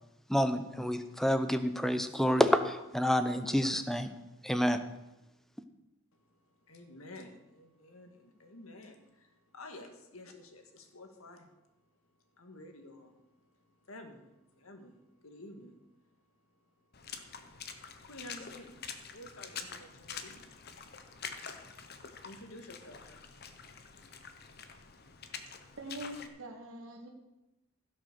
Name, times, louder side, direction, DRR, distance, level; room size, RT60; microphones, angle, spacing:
voice 1, 0.3-4.1 4.4-4.8, equal, ahead, 9 dB, 0.7 m, -28 dB
voice 2, 6.1-11.6 12.1-18.8 19.1-25.7, left 1 dB, 85° left, 5 dB, 1.9 m, -53 dB
Water / Splash splatter, 16.9-26.3, left 6 dB, 50° left, 1.0 m, -46 dB
voice 3, 25.8-27.1, right 1 dB, 75° right, 1 dB, 1.6 m, -43 dB
16.0 x 6.3 x 6.8 m, 0.99 s
head